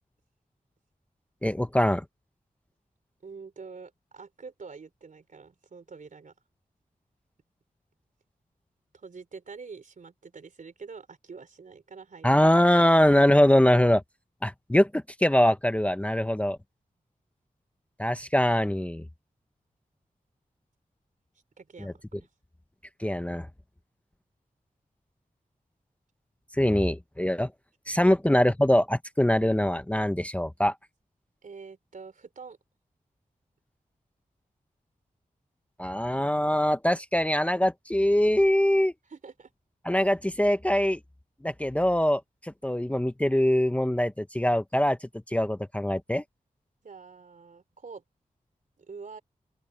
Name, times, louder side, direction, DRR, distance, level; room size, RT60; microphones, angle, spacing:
voice 1, 1.4-2.0 12.2-14.0 14.4-16.6 18.0-19.0 21.8-21.9 23.0-23.5 26.5-27.5 27.9-30.7 35.8-38.9 39.8-41.0 41.4-45.0 45.3-46.2, left 1 dB, 10° left, 0.8 m, -23 dB
voice 2, 3.2-6.3 8.9-12.4 21.6-22.3 28.0-28.2 31.4-32.6 39.1-39.5 46.8-48.0 48.8-49.2, right 5 dB, 65° right, 3.6 m, -45 dB
open air
wide cardioid pair, 100°, 14 cm